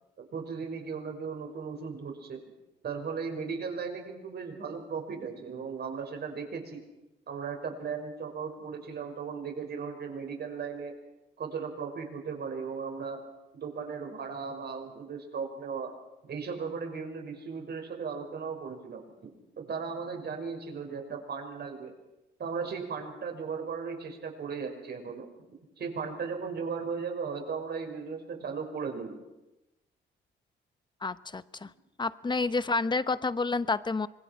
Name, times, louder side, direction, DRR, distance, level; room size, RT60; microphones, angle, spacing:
voice 1, 0.2-2.4 2.8-6.8 7.3-10.9 11.4-13.2 13.5-15.9 16.2-19.3 19.6-21.9 22.4-25.3 25.8-29.2, right 5 dB, 55° right, 3 dB, 5.9 m, -36 dB
voice 2, 31.0-31.7 32.0-34.1, left 3 dB, 20° left, 14 dB, 0.9 m, -29 dB
25.5 x 21.0 x 6.0 m, 0.97 s
cardioid pair, 90°, 20 cm